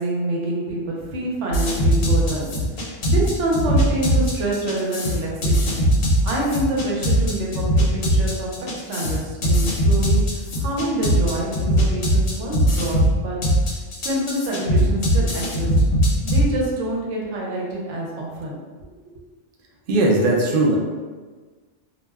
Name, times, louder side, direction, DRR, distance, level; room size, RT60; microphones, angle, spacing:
voice 1, 0.0-2.5 3.1-5.8 6.2-13.4 14.0-15.7 16.2-18.6, right 1 dB, 80° right, -3 dB, 1.0 m, -26 dB
sound 1, 1.5-16.5, equal, 60° left, 0.8 m, -20 dB
voice 2, 19.9-20.8, right 2 dB, 60° right, -2 dB, 0.6 m, -18 dB
2.4 x 2.1 x 3.3 m, 1.4 s
omnidirectional pair, 1.2 m